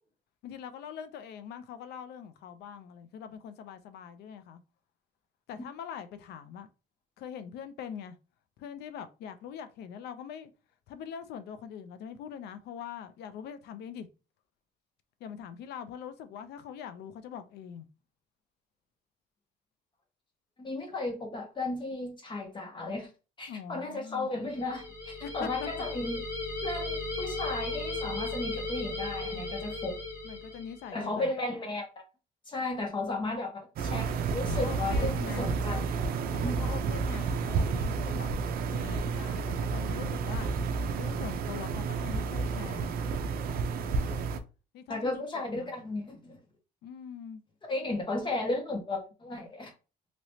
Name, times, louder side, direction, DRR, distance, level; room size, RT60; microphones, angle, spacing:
voice 1, 0.4-4.6 5.5-6.7 7.2-8.2 8.6-10.5 10.9-14.1 15.2-17.9 23.5-24.3 25.2-25.9 30.2-31.3 34.5-35.5 36.3-38.3 38.7-40.5 41.0-43.0 44.7-45.3 45.5-45.7 46.8-47.4, left 8 dB, 75° left, 0.5 m, -43 dB
voice 2, 20.6-23.1 23.4-26.2 26.6-30.0 30.9-31.9 32.5-36.6 44.9-46.4 47.6-49.7, left 2 dB, 30° left, 1.3 m, -34 dB
sound 1, 24.5-30.9, left 2 dB, 50° left, 1.6 m, -36 dB
sound 2, 33.8-44.4, right 4 dB, 60° right, 0.5 m, -31 dB
3.0 x 2.9 x 2.7 m
cardioid pair, 110°, 17 cm